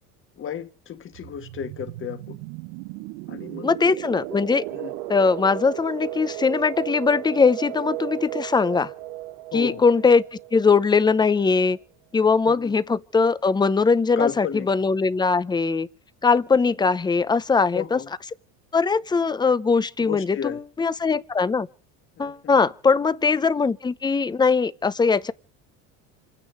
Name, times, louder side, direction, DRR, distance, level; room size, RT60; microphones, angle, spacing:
voice 1, 0.4-2.4 3.3-3.7 4.7-4.9 9.5-9.8 12.5-12.7 14.2-14.7 17.7-18.1 20.0-20.6 22.2-22.6, left 9 dB, 35° left, 1.6 m, -32 dB
sound 1, 1.1-11.6, right 15 dB, 85° right, 0.9 m, -35 dB
voice 2, 3.6-4.6 5.1-8.9 9.5-11.8 12.1-15.9 16.2-18.0 18.7-21.7 22.2-25.3, left 4 dB, 10° left, 0.7 m, -21 dB
27.0 x 9.9 x 5.0 m
cardioid pair, 120°, 34 cm